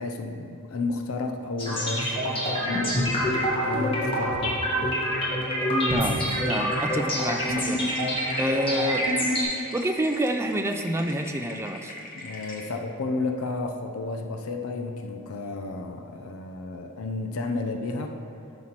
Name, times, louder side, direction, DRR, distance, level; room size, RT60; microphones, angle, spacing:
voice 1, 0.0-3.4 3.6-5.0 12.2-18.2, left 3 dB, 80° left, 4 dB, 0.5 m, -32 dB
sound 1, 1.6-9.4, equal, 25° left, 1.4 m, -26 dB
voice 2, 5.7-7.8 8.4-9.1 9.7-11.9, right 1 dB, 10° right, 5 dB, 0.3 m, -28 dB
sound 2, 6.0-12.6, left 2 dB, 40° left, 1.0 m, -41 dB
11.5 x 5.9 x 2.9 m, 2.6 s
head